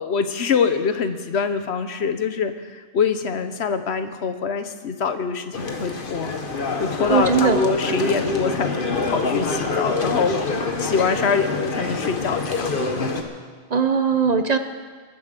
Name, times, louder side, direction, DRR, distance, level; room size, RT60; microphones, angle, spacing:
voice 1, 0.0-6.3 6.8-8.7 9.1-10.4 10.8-12.7, left 5 dB, 75° left, 9 dB, 1.2 m, -24 dB
sound 1, 5.5-13.2, left 3 dB, 50° left, 1.5 m, -26 dB
voice 2, 7.1-7.6 13.7-14.6, right 6 dB, 45° right, 9 dB, 0.8 m, -19 dB
22.0 x 7.9 x 6.8 m, 1.5 s
omnidirectional pair, 1.1 m